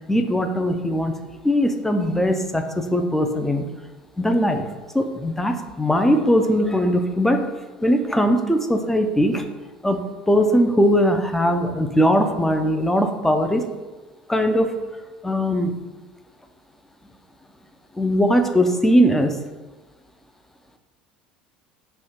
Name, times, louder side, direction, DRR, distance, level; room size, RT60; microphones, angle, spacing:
voice 1, 0.1-1.1 1.4-3.7 4.2-4.7 4.9-7.5 7.8-9.4 9.8-13.7 14.3-14.8 15.2-15.8 18.0-19.4, equal, 5° left, 6 dB, 0.4 m, -20 dB
4.2 x 2.3 x 4.4 m, 1.2 s
hypercardioid pair, 70°, 5 cm